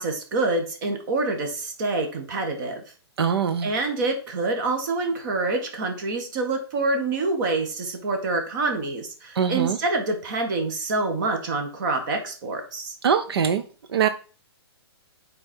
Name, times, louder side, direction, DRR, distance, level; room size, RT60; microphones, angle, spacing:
voice 1, 0.0-2.8 3.6-12.9, right 3 dB, 45° right, 4 dB, 1.7 m, -26 dB
voice 2, 3.2-3.7 9.3-9.8 13.0-13.6 13.9-14.1, right 7 dB, 65° right, 10 dB, 0.6 m, -22 dB
8.6 x 4.3 x 4.4 m, 0.38 s
figure-of-eight pair, 130°, 14 cm